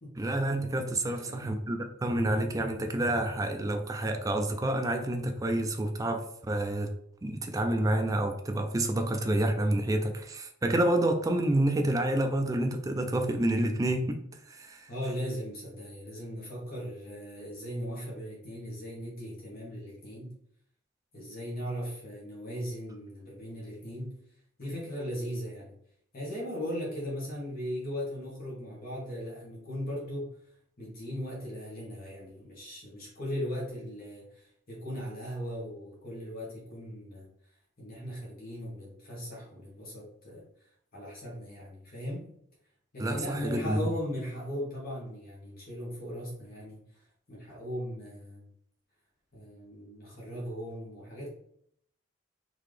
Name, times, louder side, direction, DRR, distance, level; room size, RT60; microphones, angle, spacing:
voice 1, 0.2-6.9 7.2-14.2 14.5-14.9 43.0-43.8, right 1 dB, 15° right, 0.3 m, -28 dB
voice 2, 1.0-1.5 14.9-20.4 21.1-24.2 24.6-25.7 26.1-30.4 30.8-37.3 37.8-40.4 40.9-42.3 42.9-46.8 47.3-48.4 49.3-51.3, equal, 45° left, 1.2 m, -38 dB
3.8 x 2.8 x 3.2 m
head